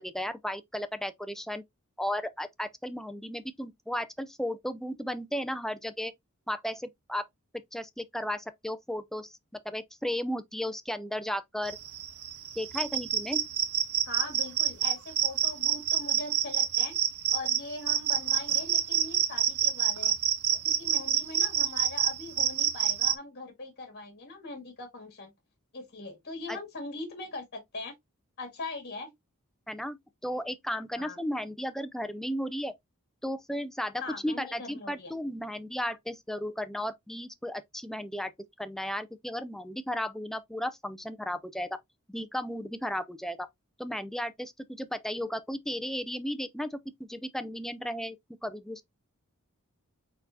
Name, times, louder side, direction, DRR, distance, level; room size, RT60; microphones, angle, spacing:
voice 1, 0.0-1.6 2.0-6.1 6.5-7.2 7.7-9.4 9.6-11.8 12.6-13.5 26.5-26.6 29.7-30.0 30.2-32.7 33.2-38.3 38.6-41.8 42.1-43.5 43.8-48.8, equal, ahead, 0.4 m, -34 dB
sound 1, 11.7-23.1, right 9 dB, 80° right, 0.9 m, -27 dB
voice 2, 14.1-17.0 17.3-20.2 20.6-25.3 25.7-27.9 28.4-29.1 31.0-31.2 34.0-35.1, left 2 dB, 50° left, 1.9 m, -41 dB
4.2 x 4.0 x 2.7 m
head